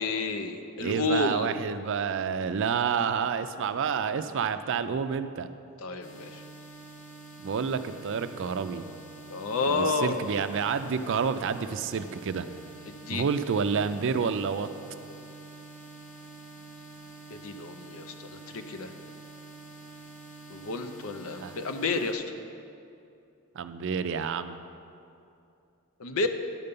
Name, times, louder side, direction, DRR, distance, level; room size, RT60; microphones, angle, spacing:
voice 1, 0.0-1.6 5.8-6.4 9.3-10.2 12.9-13.3 17.4-18.9 20.5-22.2 26.0-26.3, left 3 dB, 70° left, 7 dB, 0.6 m, -30 dB
voice 2, 0.8-5.5 7.4-8.9 9.7-12.5 13.1-14.7 21.4-21.6 23.5-24.6, right 6 dB, 60° right, 10 dB, 0.4 m, -29 dB
sound 1, 6.0-22.1, right 3 dB, 35° left, 1.0 m, -47 dB
10.5 x 5.3 x 6.7 m, 2.6 s
head